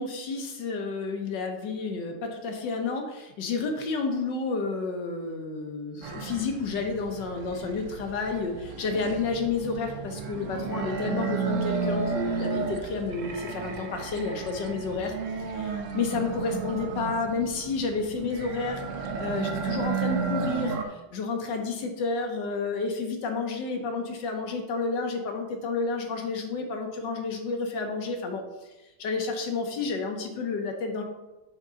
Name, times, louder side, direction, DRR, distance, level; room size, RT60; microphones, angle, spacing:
voice 1, 0.0-15.1 15.5-18.8 19.2-28.4 29.0-31.0, left 4 dB, 80° left, 4 dB, 1.7 m, -30 dB
sound 1, 6.0-20.8, right 5 dB, 60° right, 0.8 m, -33 dB
7.6 x 3.7 x 5.6 m, 1.1 s
omnidirectional pair, 1.9 m